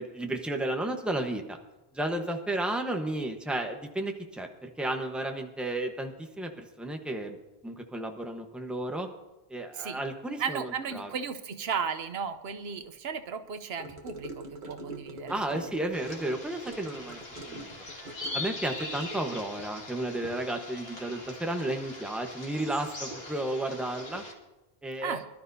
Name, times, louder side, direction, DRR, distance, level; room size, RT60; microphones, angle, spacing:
voice 1, 0.0-1.6 1.9-7.4 7.6-9.1 9.5-11.1 15.3-17.2 17.5-17.7 18.3-24.2 24.8-25.2, right 1 dB, ahead, 4 dB, 1.0 m, -33 dB
voice 2, 10.4-15.7 25.0-25.2, right 6 dB, 85° right, 10 dB, 1.0 m, -35 dB
Gurgling / Car passing by / Sink (filling or washing), 13.8-19.5, right 2 dB, 50° right, 1.3 m, -44 dB
sound 1, 15.9-24.3, left 2 dB, 75° left, 2.5 m, -41 dB
23.5 x 12.0 x 2.7 m, 1.0 s
omnidirectional pair, 1.0 m